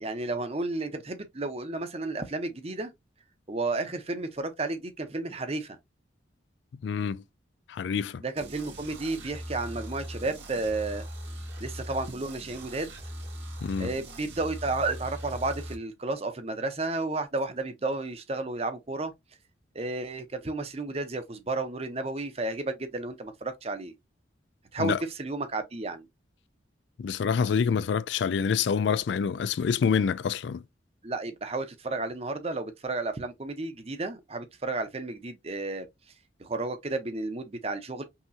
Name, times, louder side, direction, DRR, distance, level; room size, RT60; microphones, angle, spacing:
voice 1, 0.0-2.9 3.5-5.8 8.2-11.0 11.6-12.9 13.8-19.1 19.7-23.9 24.7-26.1 31.0-35.9 36.4-38.0, right 2 dB, 35° right, 0.8 m, -32 dB
voice 2, 6.8-7.2 7.7-8.2 13.6-13.9 24.8-25.0 27.0-30.6, left 6 dB, 70° left, 0.3 m, -26 dB
sound 1, 8.4-15.7, equal, 75° right, 2.1 m, -40 dB
5.6 x 2.9 x 2.7 m
head